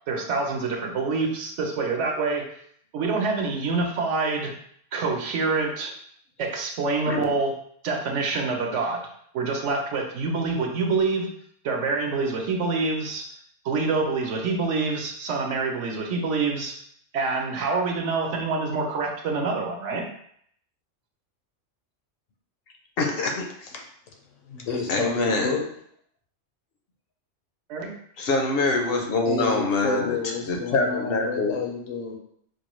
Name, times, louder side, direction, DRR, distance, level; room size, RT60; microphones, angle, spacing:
voice 1, 0.1-2.4 2.9-4.5 4.9-5.9 6.4-7.5 7.8-9.0 9.3-11.3 11.6-13.2 13.6-16.7 17.1-20.0 27.7-27.9, right 4 dB, 75° right, 2 dB, 1.0 m, -26 dB
voice 2, 23.0-23.7 24.9-25.5 28.2-30.2 30.5-31.6, left 3 dB, 60° left, 2 dB, 0.7 m, -25 dB
voice 3, 24.4-25.6 29.2-32.2, left 4 dB, 85° left, 1 dB, 1.2 m, -30 dB
4.5 x 2.3 x 3.0 m, 0.66 s
omnidirectional pair, 1.3 m